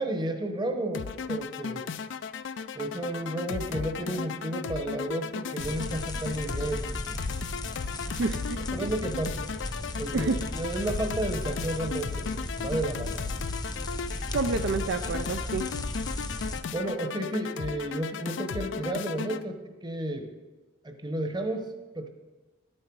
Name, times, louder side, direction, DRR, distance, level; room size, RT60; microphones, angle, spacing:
voice 1, 0.0-1.9 2.7-7.2 8.7-9.4 10.0-13.2 16.7-20.3 20.8-22.1, right 1 dB, 20° right, 6 dB, 1.0 m, -32 dB
sound 1, 0.9-19.4, left 5 dB, 65° left, 0.4 m, -36 dB
sound 2, 5.6-16.6, left 1 dB, 20° left, 0.8 m, -36 dB
voice 2, 8.1-8.9 10.1-10.4 14.3-15.6, right 3 dB, 60° right, 8 dB, 0.5 m, -29 dB
11.5 x 8.8 x 4.7 m, 1.2 s
head